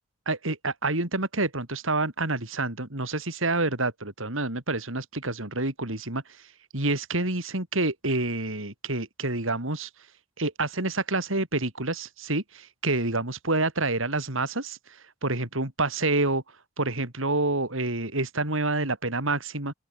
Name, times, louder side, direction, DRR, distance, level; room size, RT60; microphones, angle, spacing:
voice 1, 0.3-9.9 10.4-16.4 16.8-19.7, right 2 dB, 80° right, 4.0 m, -28 dB
open air
head